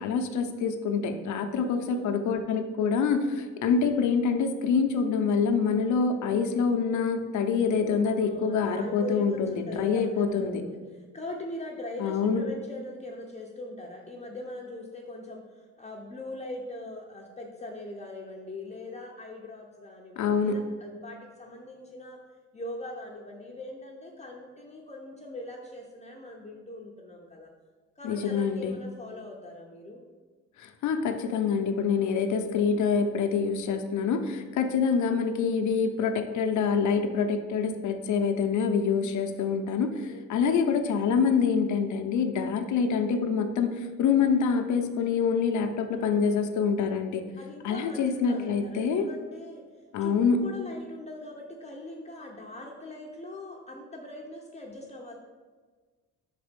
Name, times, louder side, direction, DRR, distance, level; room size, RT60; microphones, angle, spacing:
voice 1, 0.0-10.6 12.0-12.5 20.2-20.6 28.0-28.7 30.6-47.2 47.6-49.1 49.9-50.4, left 5 dB, 75° left, 6 dB, 0.7 m, -26 dB
voice 2, 1.6-2.2 8.1-22.2 22.5-27.5 28.0-30.0 35.4-35.8 40.0-40.5 45.9-46.6 47.4-49.6 50.0-55.1, left 2 dB, 20° left, -1 dB, 0.8 m, -41 dB
5.2 x 4.1 x 5.1 m, 1.4 s
cardioid pair, 90°, 30 cm